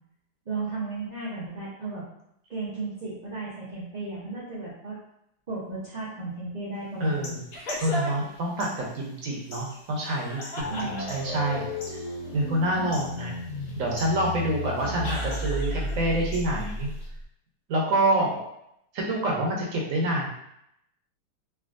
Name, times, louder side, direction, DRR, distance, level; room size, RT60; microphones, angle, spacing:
voice 1, 0.5-2.0 2.5-5.0 5.5-7.3 10.7-11.1 14.8-15.0, right 3 dB, 85° right, -9 dB, 0.3 m, -34 dB
sound 1, 7.0-17.1, left 1 dB, 80° left, 1.5 m, -47 dB
voice 2, 7.0-7.4 7.8-11.6 12.3-13.3 13.8-16.9 17.7-18.5 18.9-20.3, right 1 dB, 65° right, -2 dB, 0.9 m, -27 dB
sound 2, 7.5-8.3 10.0-11.4 15.0-16.1, equal, 65° left, 1.0 m, -36 dB
sound 3, 10.6-17.2, left 1 dB, 45° left, 0.5 m, -34 dB
3.4 x 2.5 x 2.4 m, 0.77 s
omnidirectional pair, 1.8 m